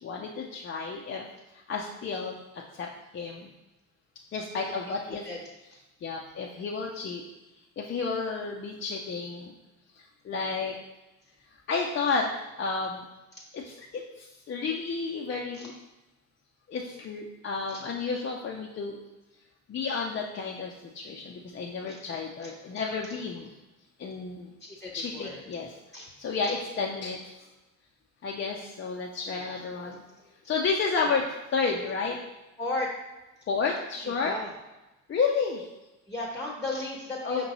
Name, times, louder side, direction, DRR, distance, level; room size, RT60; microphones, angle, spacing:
voice 1, 0.0-1.3 1.5-2.9 3.1-3.5 4.3-5.2 6.0-7.2 7.8-9.5 9.9-10.8 11.5-12.3 12.6-13.1 13.5-15.7 16.7-19.0 19.7-23.6 24.0-24.5 24.9-25.7 26.2-27.5 28.2-30.0 30.5-32.2 33.5-34.4 35.1-35.7 37.2-37.5, left 4 dB, 30° left, -1 dB, 0.5 m, -31 dB
voice 2, 24.7-25.4 25.9-26.1 29.3-29.6 29.8-29.9 31.0-31.2 32.6-32.9 34.0-34.5 36.1-37.5, left 2 dB, 10° left, -1 dB, 0.8 m, -35 dB
5.1 x 2.8 x 2.9 m, 1.0 s
hypercardioid pair, 55°, 40 cm